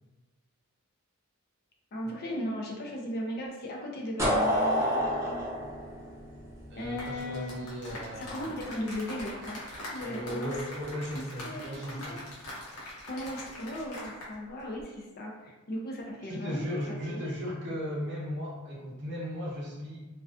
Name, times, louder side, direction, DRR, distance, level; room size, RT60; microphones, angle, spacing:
voice 1, 1.9-5.4 6.8-7.6 7.9-9.6 9.9-10.5 11.1-12.2 13.1-16.6 16.9-17.2, equal, 45° left, 0 dB, 0.4 m, -37 dB
sound 1, 4.2-7.0, equal, 15° right, 0.6 m, -28 dB
voice 2, 6.7-8.5 10.0-12.2 16.2-20.1, equal, 55° right, -4 dB, 0.6 m, -36 dB
sound 2, 6.8-14.3 14.6-14.8, left 1 dB, 90° left, 0.8 m, -43 dB
2.3 x 2.3 x 2.3 m, 1.2 s
head